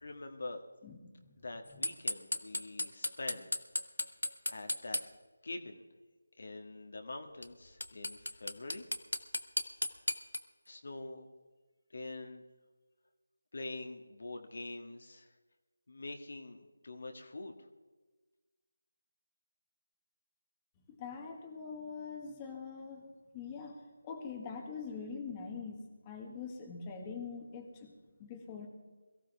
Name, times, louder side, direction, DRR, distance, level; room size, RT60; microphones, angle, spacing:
voice 1, 0.0-0.6 1.4-3.5 4.5-5.0 5.4-5.9 6.4-8.9 10.7-11.3 11.9-12.4 13.5-15.3 15.9-17.5, left 2 dB, 60° left, 4 dB, 1.7 m, -44 dB
voice 2, 0.8-1.4 1.7-1.8 21.0-27.9 28.2-28.7, left 5 dB, 15° left, 2 dB, 1.7 m, -44 dB
sound 1, 1.8-5.0 7.4-7.5 7.8-10.4, left 1 dB, 85° left, 1.0 m, -34 dB
22.0 x 15.0 x 3.5 m, 1.3 s
figure-of-eight pair, 160°, 0 cm